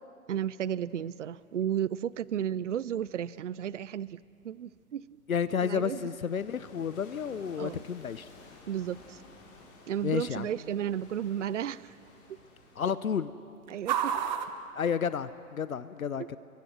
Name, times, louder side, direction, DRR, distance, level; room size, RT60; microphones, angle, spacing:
voice 1, 0.3-5.1 5.6-6.1 7.6-7.8 8.7-9.2 9.9-12.0 12.3-12.4 13.7-14.2 16.2-16.3, right 9 dB, 55° right, 20 dB, 0.6 m, -33 dB
sound 1, 0.9-15.7, right 8 dB, 30° right, 1.1 m, -42 dB
voice 2, 5.3-8.3 10.0-10.5 12.8-13.3 14.7-16.4, left 7 dB, 65° left, 15 dB, 0.8 m, -31 dB
sound 2, 5.5-12.9, left 3 dB, 20° left, 4.8 m, -54 dB
29.0 x 23.0 x 6.3 m, 2.4 s
figure-of-eight pair, 125°, 45 cm